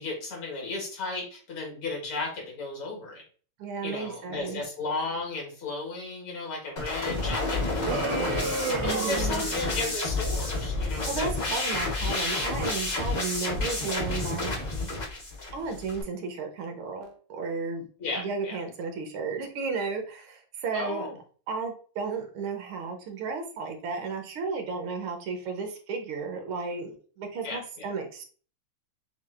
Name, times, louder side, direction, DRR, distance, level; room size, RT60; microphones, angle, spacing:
voice 1, 0.0-3.2 3.8-8.4 8.8-11.3 18.0-18.6 20.7-21.2 27.4-27.9, left 3 dB, 75° left, -1 dB, 2.4 m, -34 dB
voice 2, 3.6-4.6 8.8-9.5 10.9-14.5 15.5-17.9 18.2-21.1 21.5-28.2, right 4 dB, 80° right, 4 dB, 1.7 m, -34 dB
sound 1, 6.8-16.0, left 2 dB, 50° left, 0.5 m, -30 dB
sound 2, 7.8-10.0, right 4 dB, 60° right, 1.1 m, -32 dB
7.1 x 2.5 x 2.4 m, 0.41 s
omnidirectional pair, 2.3 m